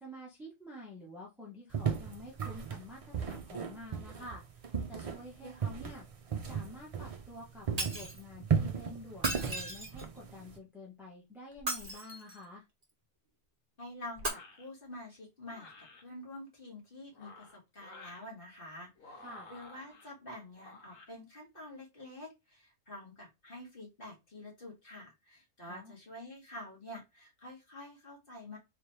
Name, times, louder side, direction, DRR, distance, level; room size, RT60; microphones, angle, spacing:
voice 1, 0.0-6.1 6.4-12.6 19.2-19.5 25.7-26.0, left 1 dB, ahead, -3 dB, 1.0 m, -49 dB
sound 1, 1.7-7.4 7.7-10.6, right 6 dB, 65° right, 0.3 m, -35 dB
Shatter, 7.8-8.2 9.1-10.2 11.5-12.4 14.2-14.3, right 1 dB, 30° right, 1.4 m, -36 dB
voice 2, 13.8-15.7 16.0-28.6, left 1 dB, 40° left, -2 dB, 2.0 m, -48 dB
sound 2, 14.2-14.7 15.5-16.0 17.0-18.3 19.0-20.1 20.6-21.1, left 2 dB, 70° left, 1.4 m, -53 dB
3.9 x 3.0 x 3.2 m, 0.23 s
omnidirectional pair, 1.4 m